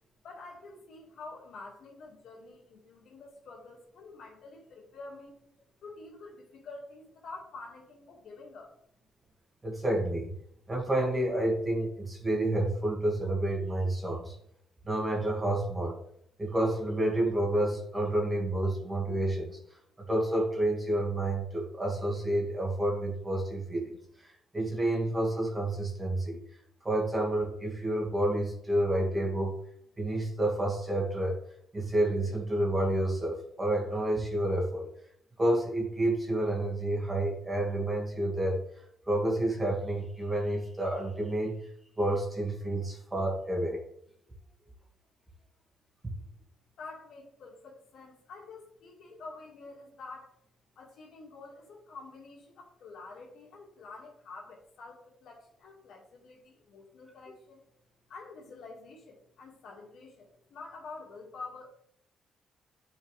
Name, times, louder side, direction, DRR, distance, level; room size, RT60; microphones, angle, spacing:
voice 1, 0.2-5.4 5.8-8.7 46.8-50.3 50.8-57.6 58.1-61.7, left 3 dB, 70° left, -1 dB, 2.2 m, -48 dB
voice 2, 9.6-10.4 10.7-14.3 14.8-16.0 16.4-19.6 20.0-24.0 24.2-26.4 26.8-29.5 30.0-31.4 31.7-34.9 35.4-38.6 39.1-41.6 42.0-43.8 46.0-46.1, right 1 dB, 20° right, -1 dB, 2.3 m, -29 dB
9.1 x 4.7 x 3.5 m, 0.70 s
cardioid pair, 90°, 0 cm